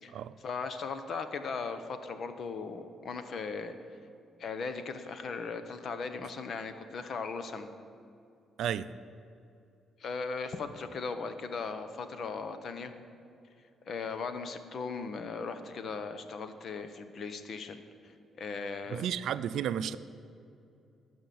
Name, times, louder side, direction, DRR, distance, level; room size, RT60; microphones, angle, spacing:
voice 1, 0.4-3.7 4.4-7.7 10.0-12.9 13.9-19.1, left 4 dB, 55° left, 9 dB, 1.0 m, -38 dB
voice 2, 8.6-8.9 18.9-20.0, right 9 dB, 75° right, 14 dB, 0.4 m, -32 dB
12.5 x 5.7 x 9.3 m, 2.6 s
cardioid pair, 90°, 0 cm